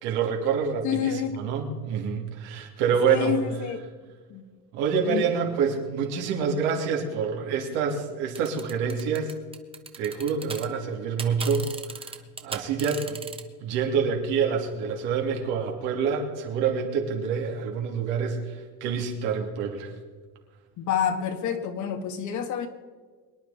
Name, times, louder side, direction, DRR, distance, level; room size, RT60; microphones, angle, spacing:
voice 1, 0.0-3.4 4.7-9.4 9.9-12.2 12.4-13.2 13.6-19.9, right 6 dB, 80° right, 1 dB, 3.0 m, -27 dB
voice 2, 0.8-1.4 3.0-3.8 4.3-4.4 5.0-5.2 20.8-22.7, left 8 dB, 50° left, 7 dB, 1.7 m, -28 dB
sound 1, 8.3-10.7 10.9-13.4, right 4 dB, 15° right, 1.1 m, -37 dB
23.5 x 10.0 x 4.3 m, 1.5 s
cardioid pair, 140°, 38 cm